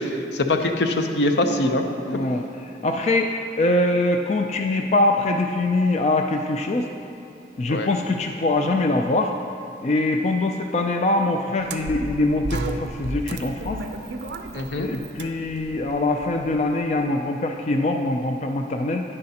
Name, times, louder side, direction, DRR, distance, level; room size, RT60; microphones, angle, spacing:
voice 1, 0.0-1.8 7.7-7.9 14.5-14.9, left 1 dB, 75° left, 5 dB, 0.6 m, -23 dB
voice 2, 2.1-6.9 7.6-9.3 9.8-13.8 14.7-19.0, left 2 dB, 40° left, 4 dB, 0.3 m, -23 dB
sound 1, 11.6-16.9, right 2 dB, 75° right, 0.5 m, -34 dB
10.5 x 9.8 x 2.8 m, 2.6 s
head